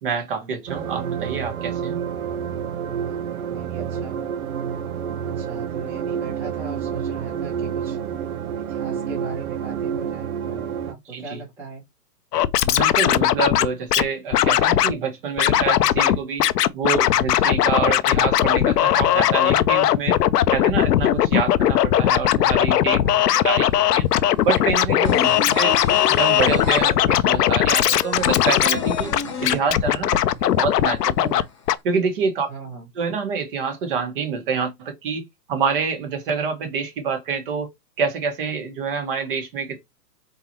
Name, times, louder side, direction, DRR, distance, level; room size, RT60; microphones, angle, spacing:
voice 1, 0.0-2.0 11.1-11.4 12.6-16.4 16.7-20.2 20.5-23.0 23.3-24.1 24.4-25.2 25.5-25.8 26.1-29.1 29.4-30.1 30.4-31.5 31.8-32.5 32.9-35.2 35.5-37.7 38.0-39.8, right 5 dB, 35° right, 1.3 m, -26 dB
sound 1, 0.7-10.9, right 8 dB, 60° right, 0.8 m, -29 dB
voice 2, 3.0-4.3 5.2-8.0 8.7-11.8 22.9-23.2 25.1-25.4 32.5-32.9, right 3 dB, 5° right, 1.0 m, -38 dB
Scratching (performance technique), 12.3-14.0 14.3-14.9 15.4-16.2 16.4-31.4 31.7-31.8, left 11 dB, 75° left, 0.7 m, -19 dB
sound 2, 23.7-30.2 30.5-30.6 30.9-31.7, left 4 dB, 20° left, 0.6 m, -31 dB
4.3 x 3.9 x 2.9 m
hypercardioid pair, 160°, 49 cm